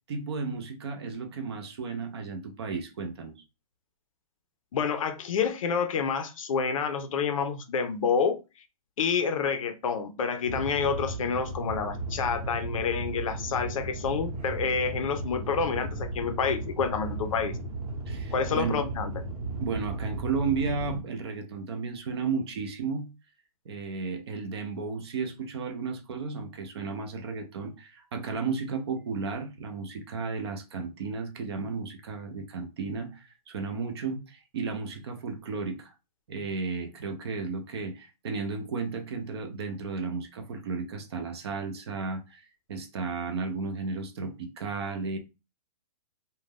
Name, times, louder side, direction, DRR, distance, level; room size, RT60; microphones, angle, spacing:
voice 1, 0.1-3.4 18.1-18.9 19.6-23.1 23.7-35.9 36.3-45.2, right 4 dB, 40° right, 0.5 m, -33 dB
voice 2, 4.7-8.4 9.0-17.6 18.3-19.1, left 6 dB, 55° left, 0.5 m, -28 dB
sound 1, 10.5-21.0, right 2 dB, 70° right, 0.9 m, -35 dB
2.4 x 2.1 x 3.4 m
hypercardioid pair, 170°, 20 cm